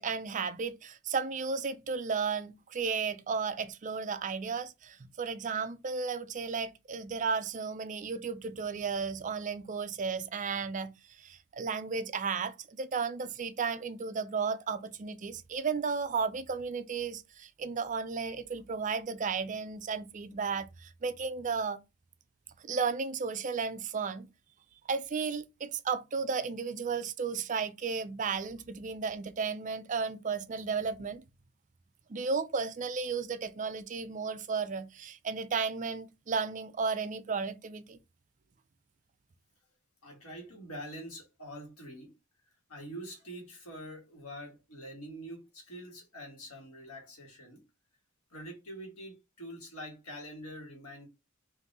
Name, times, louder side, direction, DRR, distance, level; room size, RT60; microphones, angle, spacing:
voice 1, 0.0-21.8 22.6-24.3 24.9-31.2 32.1-38.0, right 5 dB, 35° right, 0.4 m, -34 dB
voice 2, 40.0-42.1 42.7-47.6 48.3-51.1, equal, 90° left, 1.7 m, -45 dB
3.7 x 2.6 x 4.1 m
head